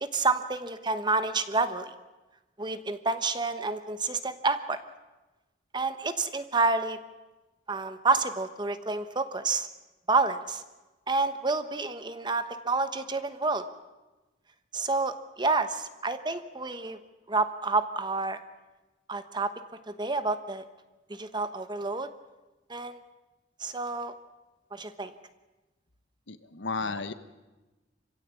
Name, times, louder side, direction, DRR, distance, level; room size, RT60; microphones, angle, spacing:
voice 1, 0.0-1.9 2.6-4.8 5.7-7.0 7.7-9.7 10.1-10.6 11.1-13.6 14.7-17.0 17.3-18.4 19.1-19.5 19.9-20.6 21.1-22.1 22.7-23.0 23.6-24.1 24.7-25.1, right 3 dB, 25° right, 10 dB, 1.1 m, -29 dB
voice 2, 26.3-27.1, left 4 dB, 85° left, 11 dB, 1.3 m, -33 dB
27.0 x 16.0 x 8.4 m, 1.1 s
head